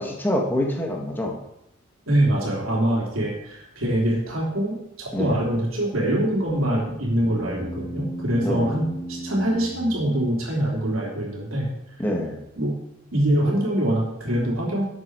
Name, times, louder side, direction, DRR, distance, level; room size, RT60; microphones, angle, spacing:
voice 1, 0.0-1.4 5.1-5.4 8.4-8.7 12.0-12.4, left 1 dB, 10° left, 0 dB, 1.7 m, -26 dB
voice 2, 2.1-11.7 12.6-12.8 13.1-14.8, right 1 dB, 90° right, -3 dB, 3.3 m, -24 dB
sound 1, 7.1-10.8, equal, 5° right, 4.6 m, -36 dB
12.0 x 8.2 x 4.7 m, 0.85 s
head